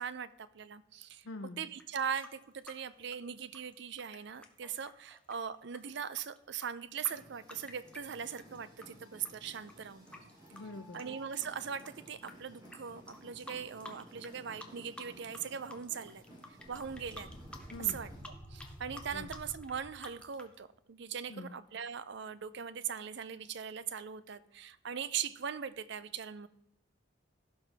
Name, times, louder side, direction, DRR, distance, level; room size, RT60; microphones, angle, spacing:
voice 1, 0.0-1.3 1.6-10.1 10.9-17.3 17.8-18.1 18.5-26.5, right 7 dB, 55° right, 15 dB, 0.5 m, -40 dB
voice 2, 1.2-1.6 10.5-11.1 17.7-18.0 19.1-19.3 21.3-21.5, left 2 dB, 65° left, 6 dB, 0.6 m, -45 dB
sound 1, 1.7-8.9 9.2-12.3 12.6-12.8 13.1-14.3 14.6-15.4 15.7-20.5, left 2 dB, 5° left, 0.8 m, -51 dB
sound 2, 7.1-18.2, right 1 dB, 15° right, 3.2 m, -56 dB
sound 3, 16.6-20.3, equal, 35° left, 3.6 m, -50 dB
16.0 x 5.5 x 3.4 m, 0.80 s
head